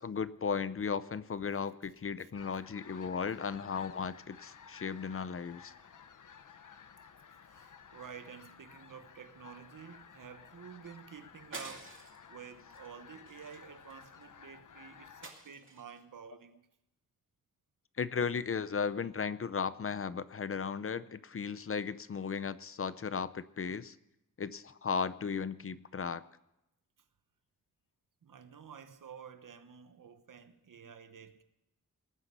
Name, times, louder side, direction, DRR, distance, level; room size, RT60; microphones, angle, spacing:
voice 1, 0.0-5.7 18.0-24.0 24.4-26.2, left 6 dB, 45° left, 0.6 m, -36 dB
sound 1, 2.3-15.3, left 7 dB, 75° left, 1.0 m, -55 dB
voice 2, 7.4-16.6 28.2-31.4, right 7 dB, 80° right, 1.1 m, -51 dB
sound 2, 11.5-12.3 12.7-12.9 13.3-14.2 15.2-16.0, right 3 dB, 40° right, 2.3 m, -48 dB
19.0 x 9.4 x 6.8 m
wide cardioid pair, 125°, 32 cm